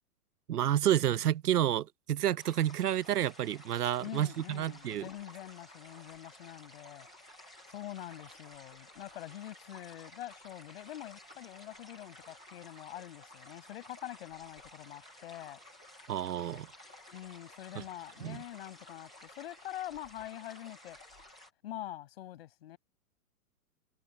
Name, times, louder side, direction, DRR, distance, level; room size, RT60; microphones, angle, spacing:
voice 1, 0.5-5.1 16.1-16.7 17.7-17.8 18.2-18.4, right 11 dB, 90° right, 1.0 m, -30 dB
sound 1, 2.4-21.5, left 1 dB, 5° left, 0.5 m, -54 dB
voice 2, 4.0-7.1 7.7-15.6 17.1-21.0 21.6-22.8, left 13 dB, 40° left, 7.9 m, -45 dB
hypercardioid pair, 175°, 45 cm